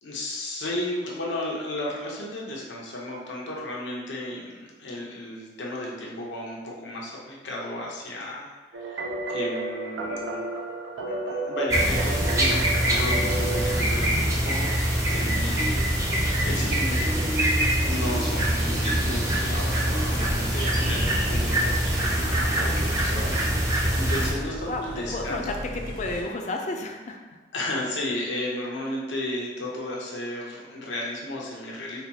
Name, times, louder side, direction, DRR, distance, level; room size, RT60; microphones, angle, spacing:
voice 1, 0.0-10.4 11.1-15.9 16.3-25.4 27.5-32.0, left 1 dB, 90° left, -3 dB, 0.8 m, -34 dB
sound 1, 8.7-14.0, right 2 dB, 85° right, 0.4 m, -32 dB
sound 2, 11.7-24.3, right 1 dB, 15° right, 0.5 m, -24 dB
sound 3, 19.8-26.2, equal, 55° right, 1.3 m, -37 dB
voice 2, 20.8-21.3 24.6-27.4 27.7-27.9, left 2 dB, 40° left, 2 dB, 0.4 m, -33 dB
4.2 x 2.3 x 2.8 m, 1.3 s
head